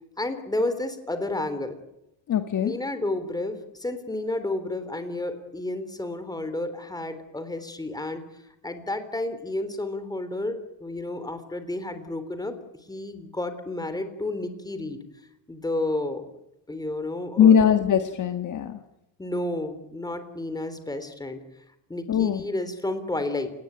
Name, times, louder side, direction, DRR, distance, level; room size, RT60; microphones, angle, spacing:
voice 1, 0.2-1.8 2.6-12.5 12.9-15.0 15.5-16.3 16.7-17.7 19.2-21.4 21.9-23.5, left 2 dB, 10° left, 10 dB, 3.5 m, -31 dB
voice 2, 2.3-2.7 17.4-18.8 22.1-22.4, left 8 dB, 40° left, 8 dB, 1.7 m, -20 dB
30.0 x 19.5 x 9.1 m, 0.86 s
cardioid pair, 150°, 44 cm